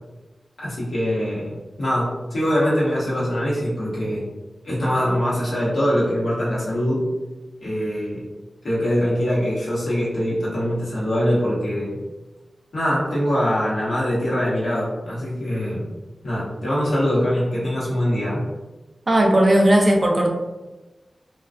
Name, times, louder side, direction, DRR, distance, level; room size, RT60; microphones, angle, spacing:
voice 1, 0.6-4.2 4.6-7.1 7.6-8.2 8.6-12.0 12.7-15.9 16.2-18.4, equal, 85° left, -7 dB, 0.9 m, -23 dB
voice 2, 19.1-20.3, right 1 dB, 40° right, 1 dB, 0.4 m, -16 dB
2.3 x 2.2 x 2.4 m, 1.1 s
wide cardioid pair, 85°, 0 cm